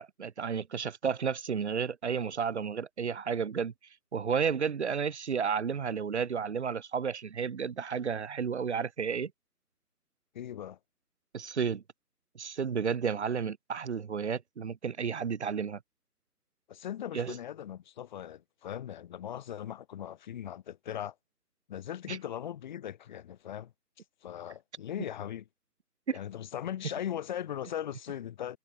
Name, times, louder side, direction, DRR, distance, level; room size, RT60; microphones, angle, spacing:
voice 1, 0.0-3.7 4.1-9.3 11.3-11.8 12.4-15.8 17.1-17.4 22.1-22.2 26.1-26.2, right 6 dB, 45° right, 7.2 m, -32 dB
voice 2, 10.3-10.8 16.7-21.1 21.7-23.7 24.2-25.4 26.1-28.6, left 10 dB, 30° left, 5.5 m, -39 dB
figure-of-eight pair, 155°, 48 cm